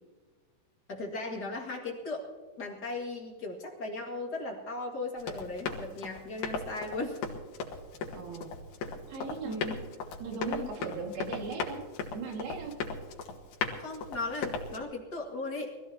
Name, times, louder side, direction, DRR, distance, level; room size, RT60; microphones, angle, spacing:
voice 1, 0.9-2.3 2.6-7.2 9.4-9.8 10.4-10.7 13.8-15.8, left 2 dB, 35° left, 0 dB, 2.0 m, -37 dB
Run, 5.2-14.8, left 4 dB, 90° left, 3.3 m, -38 dB
voice 2, 8.1-8.5 9.1-9.6 10.2-11.9 12.1-12.8, right 4 dB, 85° right, 1 dB, 3.9 m, -38 dB
23.5 x 15.0 x 2.8 m, 1.4 s
omnidirectional pair, 4.1 m